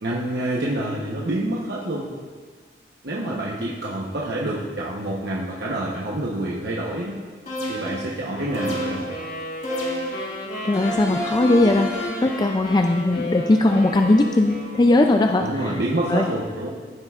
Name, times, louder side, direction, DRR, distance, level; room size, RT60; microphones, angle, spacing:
voice 1, 0.0-2.1 3.0-7.2 7.7-9.1 15.4-16.7, right 1 dB, 65° right, -5 dB, 1.0 m, -27 dB
sound 1, 7.5-8.1 8.5-9.2 9.6-10.3 10.7-12.3, equal, 40° left, 2.0 m, -30 dB
sound 2, 8.3-15.5, left 1 dB, 55° left, 1.9 m, -34 dB
voice 2, 10.6-11.9 12.2-15.8 16.1-16.3, left 2 dB, 25° left, 4 dB, 0.3 m, -19 dB
15.5 x 7.6 x 2.4 m, 1.5 s
head